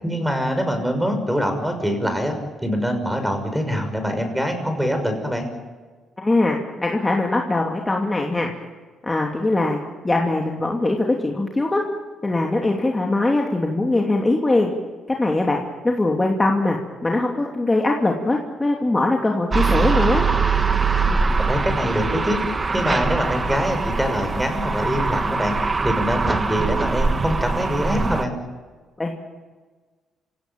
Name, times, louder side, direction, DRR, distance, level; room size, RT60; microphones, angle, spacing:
voice 1, 0.0-5.5 21.5-22.4 22.7-25.5 25.8-28.3, equal, 5° right, 6 dB, 6.1 m, -24 dB
voice 2, 6.2-8.5 9.0-9.8 10.0-11.8 12.2-14.7 15.1-20.2 29.0-29.1, left 2 dB, 20° left, 0 dB, 2.8 m, -21 dB
sound 1, 19.5-28.2, right 4 dB, 30° right, 1.5 m, -22 dB
28.0 x 17.0 x 9.3 m, 1.4 s
cardioid pair, 90°, 0 cm